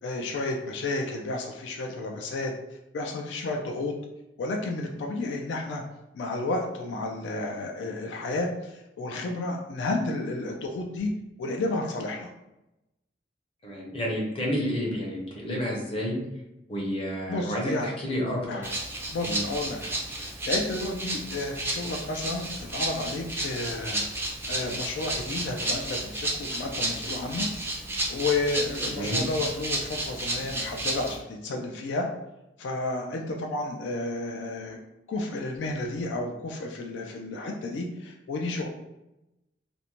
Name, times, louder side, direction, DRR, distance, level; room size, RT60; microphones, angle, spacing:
voice 1, 0.0-2.5 2.9-3.9 4.4-5.8 6.1-11.1 11.4-12.3 17.3-17.9 18.5-18.8 19.1-24.1 24.4-27.5 28.1-32.1 32.6-34.8 35.1-38.7, left 2 dB, 75° left, 1 dB, 0.3 m, -31 dB
voice 2, 13.6-16.2 16.7-18.6 19.3-19.4 28.9-29.2, equal, 30° left, -2 dB, 0.6 m, -30 dB
Rattle (instrument), 18.6-31.2, right 1 dB, 15° right, 0.4 m, -32 dB
2.5 x 2.1 x 2.9 m, 0.93 s
head